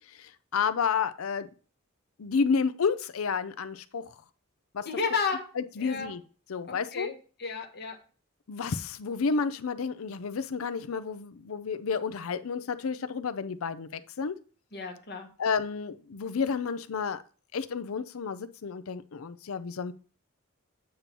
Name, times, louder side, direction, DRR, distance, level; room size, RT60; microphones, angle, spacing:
voice 1, 0.1-1.5 2.2-4.1 4.7-4.9 5.6-6.2 6.5-7.1 8.5-14.3 15.4-17.2 17.5-19.9, left 5 dB, 75° left, 12 dB, 0.5 m, -31 dB
voice 2, 4.8-5.4 5.8-6.1 6.7-7.1 7.4-8.0 14.7-15.3, left 5 dB, 50° left, 3 dB, 1.2 m, -32 dB
8.7 x 3.0 x 5.3 m, 0.39 s
head